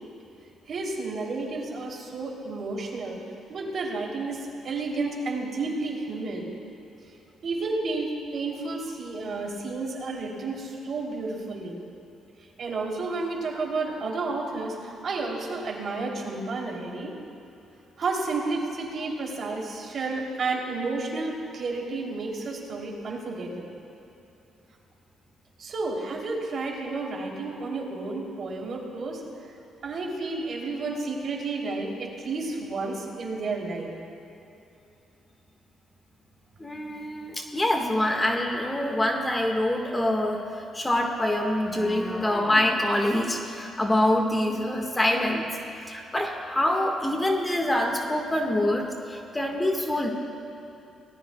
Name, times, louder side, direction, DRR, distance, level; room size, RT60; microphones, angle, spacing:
voice 1, 0.7-3.2 3.5-6.5 7.4-11.8 12.6-17.1 18.0-23.6 25.6-29.2 29.8-33.9, right 3 dB, 55° right, -1 dB, 3.3 m, -31 dB
voice 2, 36.6-40.4 40.7-45.5 45.9-50.1, left 1 dB, 15° left, 2 dB, 1.7 m, -25 dB
27.0 x 18.5 x 2.4 m, 2.8 s
cardioid pair, 90°, 0 cm